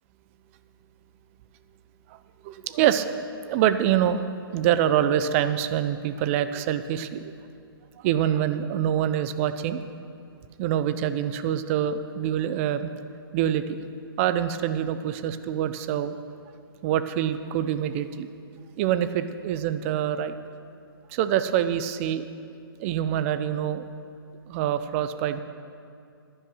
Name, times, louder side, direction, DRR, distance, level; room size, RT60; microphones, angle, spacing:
voice 1, 2.1-3.1 3.5-4.3 4.5-7.3 8.0-9.8 10.6-12.9 13.3-13.8 14.2-16.2 16.8-18.3 18.8-20.4 21.1-22.3 22.8-23.8 24.5-25.4, right 10 dB, 35° right, 12 dB, 0.6 m, -25 dB
11.0 x 10.0 x 6.1 m, 2.6 s
hypercardioid pair, 135°, 13 cm